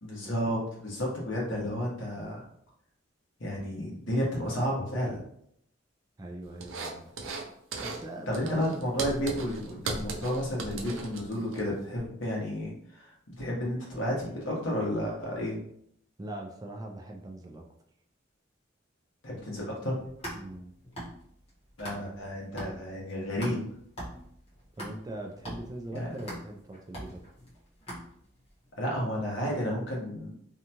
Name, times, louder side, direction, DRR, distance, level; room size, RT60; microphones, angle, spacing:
voice 1, 0.0-2.4 3.4-5.2 8.3-15.6 19.2-19.9 21.8-23.6 25.9-26.1 28.8-30.3, equal, 70° left, -4 dB, 1.1 m, -32 dB
voice 2, 6.2-7.3 7.7-8.9 16.2-17.6 20.3-20.7 24.8-27.2, right 1 dB, 20° right, 1 dB, 0.3 m, -41 dB
sound 1, 6.6-7.5 7.7-8.0 8.3-11.6, right 3 dB, 80° right, 0.5 m, -37 dB
sound 2, 20.0-22.3 22.6-28.5, equal, 30° left, 1.1 m, -42 dB
2.7 x 2.3 x 2.8 m, 0.69 s
head